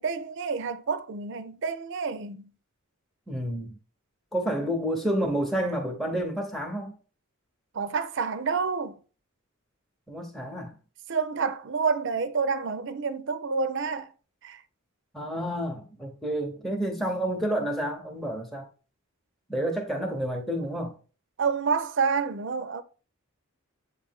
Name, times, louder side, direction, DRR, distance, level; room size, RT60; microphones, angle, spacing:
voice 1, 0.0-2.5 7.7-9.0 11.1-14.1 14.4-14.6 21.4-22.8, right 5 dB, 55° right, 0.5 m, -28 dB
voice 2, 3.3-3.8 4.3-6.9 10.1-10.7 15.1-18.7 19.5-20.9, right 1 dB, ahead, 0.8 m, -29 dB
8.1 x 3.3 x 3.5 m
head